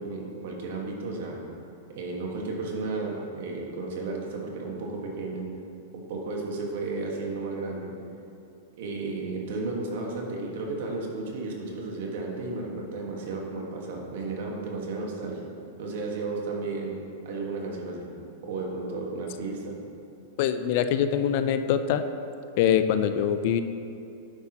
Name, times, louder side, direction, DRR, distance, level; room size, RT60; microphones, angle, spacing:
voice 1, 0.0-1.4 1.9-5.5 5.9-7.9 8.8-15.5 15.8-17.0 17.2-18.1 18.5-19.8, right 3 dB, 65° right, -1 dB, 1.4 m, -33 dB
voice 2, 20.4-22.0 22.6-23.6, left 9 dB, 50° left, 10 dB, 0.4 m, -23 dB
9.6 x 5.7 x 2.9 m, 2.6 s
supercardioid pair, 150°, 0 cm